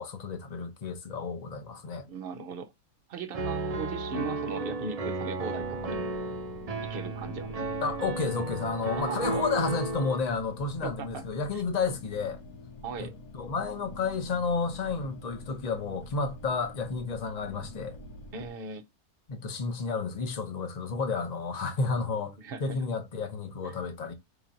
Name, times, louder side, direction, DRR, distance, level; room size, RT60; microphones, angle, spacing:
voice 1, 0.0-2.1 7.8-12.4 13.0-18.0 19.3-24.1, left 4 dB, 35° left, 0.7 m, -31 dB
voice 2, 2.1-2.7 3.1-6.1 6.9-7.6 9.0-9.4 10.8-11.2 11.5-11.6 12.8-13.1 18.3-18.8 22.0-22.1 22.4-22.8 23.6-23.8, right 4 dB, 55° right, 0.7 m, -38 dB
Piano, 3.3-10.2, right 3 dB, 85° right, 0.3 m, -33 dB
sound 1, 5.5-18.5, left 2 dB, 75° left, 1.2 m, -46 dB
5.0 x 2.9 x 2.5 m
omnidirectional pair, 1.5 m